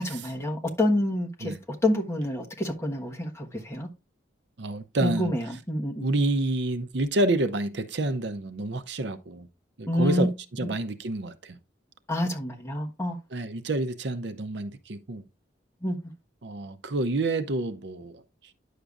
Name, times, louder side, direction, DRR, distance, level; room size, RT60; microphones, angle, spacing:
voice 1, 0.0-1.5 1.8-3.9 5.0-6.1 9.9-10.3 12.1-13.2 15.8-16.1, left 1 dB, 15° left, 1.2 m, -27 dB
voice 2, 4.6-5.3 6.0-9.5 9.8-11.6 13.3-15.2 16.4-18.2, right 2 dB, 65° right, 0.6 m, -28 dB
10.0 x 6.6 x 2.4 m
head